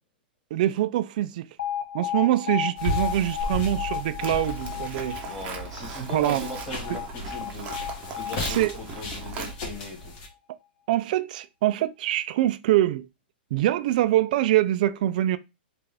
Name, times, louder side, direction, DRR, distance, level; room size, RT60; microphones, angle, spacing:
voice 1, 0.5-1.5 1.9-5.2 6.1-6.4 8.5-8.8 10.9-13.1 13.5-15.4, right 13 dB, 50° right, 0.3 m, -24 dB
Alarm, 1.6-9.6, left 10 dB, 85° left, 0.7 m, -34 dB
sound 1, 2.8-10.3, left 2 dB, 40° left, 1.3 m, -35 dB
Livestock farm animals working animals, 4.2-9.5, right 5 dB, 25° right, 0.7 m, -39 dB
voice 2, 5.2-7.7 8.1-10.1, left 2 dB, 5° left, 1.5 m, -38 dB
3.4 x 2.5 x 3.3 m
hypercardioid pair, 140°, 6 cm